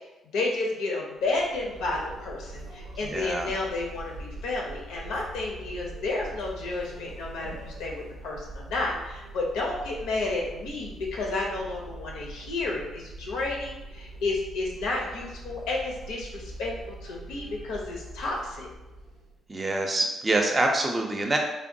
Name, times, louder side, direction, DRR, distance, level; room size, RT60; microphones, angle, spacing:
voice 1, 0.3-18.7, left 2 dB, 90° left, -1 dB, 0.7 m, -31 dB
sound 1, 1.2-19.4, right 2 dB, 85° right, 0.5 m, -43 dB
voice 2, 3.0-3.5 19.5-21.4, right 2 dB, 25° right, 2 dB, 0.5 m, -26 dB
3.3 x 2.2 x 2.6 m, 1.0 s
cardioid pair, 90°, 0 cm